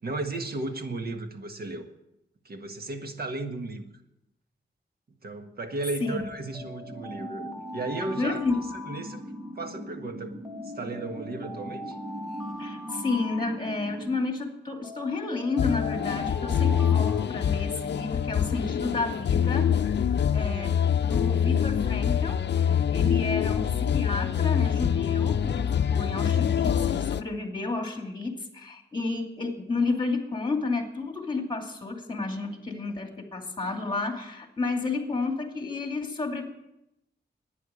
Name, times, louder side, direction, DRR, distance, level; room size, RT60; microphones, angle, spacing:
voice 1, 0.0-1.9 2.4-3.9 5.2-7.4 7.7-8.4 8.7-9.2 9.5-10.4 10.6-12.0 23.4-23.7, right 2 dB, 55° right, 6 dB, 1.6 m, -34 dB
Alarm, 6.1-9.8 10.4-14.2 14.8-18.1, left 1 dB, ahead, 1.5 m, -43 dB
sound 1, 6.8-14.2, equal, 35° right, 3.3 m, -40 dB
voice 2, 8.2-8.6 12.6-19.9 20.3-20.7 21.0-23.6 23.9-36.4, left 3 dB, 25° left, 4 dB, 2.5 m, -31 dB
sound 2, 15.6-27.2, left 8 dB, 70° left, 0.5 m, -25 dB
11.5 x 9.6 x 8.4 m, 0.87 s
wide cardioid pair, 105°, 19 cm